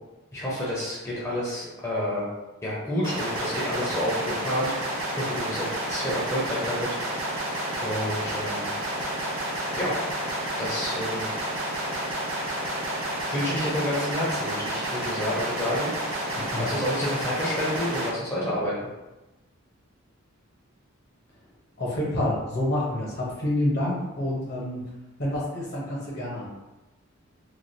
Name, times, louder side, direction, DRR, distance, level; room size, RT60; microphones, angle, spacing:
voice 1, 0.3-2.3 2.6-4.7 5.1-6.9 7.8-8.7 9.8-10.0 10.6-11.3 13.3-15.9 16.6-18.7, left 1 dB, 15° left, -8 dB, 0.6 m, -29 dB
sound 1, 3.0-18.1, right 1 dB, 70° right, 0.8 m, -30 dB
voice 2, 21.8-24.8 25.2-26.5, left 1 dB, 50° left, -4 dB, 0.8 m, -28 dB
3.1 x 2.3 x 2.6 m, 1.0 s
head